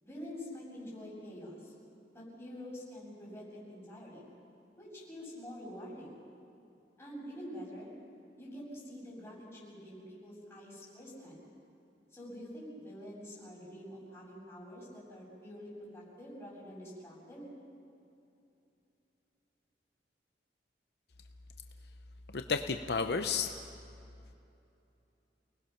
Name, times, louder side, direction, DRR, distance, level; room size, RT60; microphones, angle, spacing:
voice 1, 0.0-1.7 2.1-4.3 4.8-6.2 7.0-7.9 8.4-11.4 12.1-17.5, equal, 15° left, -6 dB, 7.9 m, -46 dB
voice 2, 22.3-23.5, left 5 dB, 65° left, 7 dB, 0.7 m, -32 dB
29.0 x 19.5 x 5.9 m, 2.7 s
head